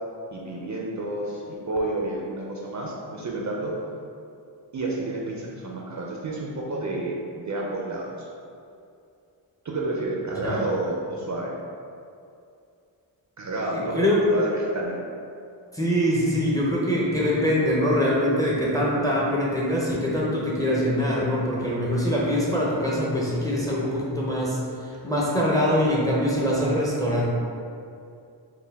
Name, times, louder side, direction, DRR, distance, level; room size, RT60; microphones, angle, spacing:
voice 1, 0.3-3.7 4.7-8.3 9.6-11.5 13.4-15.0, right 2 dB, 40° right, -2 dB, 0.5 m, -30 dB
voice 2, 13.7-14.2 15.7-27.3, equal, 10° left, -5 dB, 0.5 m, -23 dB
4.4 x 2.2 x 3.4 m, 2.5 s
wide cardioid pair, 135°, 45 cm